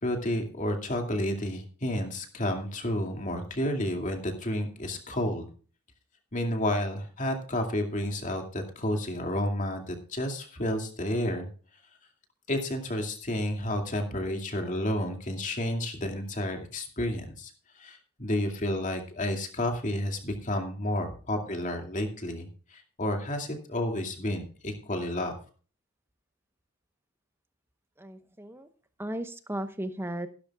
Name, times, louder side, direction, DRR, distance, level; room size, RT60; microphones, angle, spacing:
voice 1, 0.0-5.5 6.3-11.5 12.5-17.5 17.8-25.3, left 1 dB, 35° left, 4 dB, 2.3 m, -31 dB
voice 2, 28.0-28.7 29.0-30.3, right 1 dB, 10° right, 10 dB, 0.9 m, -35 dB
15.5 x 12.5 x 2.4 m, 0.39 s
head